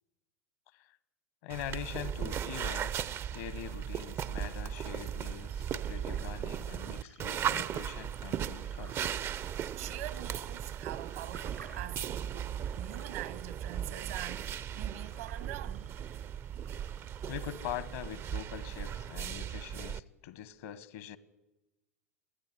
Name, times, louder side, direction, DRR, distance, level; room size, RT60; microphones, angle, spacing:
voice 1, 1.4-3.1 3.3-9.1 17.3-21.2, left 11 dB, 60° left, 1.3 m, -43 dB
sound 1, 1.5-20.0, right 9 dB, 35° right, 0.6 m, -37 dB
sound 2, 4.9-18.4, right 5 dB, 85° right, 4.2 m, -59 dB
voice 2, 9.8-16.0, right 14 dB, 65° right, 1.3 m, -44 dB
22.0 x 14.5 x 9.8 m
figure-of-eight pair, 85°, 8 cm